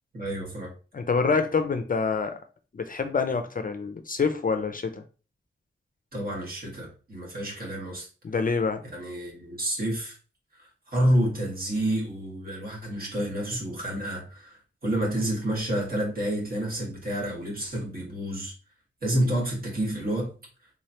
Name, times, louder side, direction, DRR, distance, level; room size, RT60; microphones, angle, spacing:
voice 1, 0.1-0.7 6.1-8.1 8.9-10.2 10.9-18.5 19.0-20.3, right 1 dB, 45° right, 1.7 m, -29 dB
voice 2, 0.9-2.4 2.7-5.0 8.2-8.8, left 4 dB, 40° left, 0.4 m, -26 dB
3.8 x 3.1 x 2.8 m
wide cardioid pair, 110°, 21 cm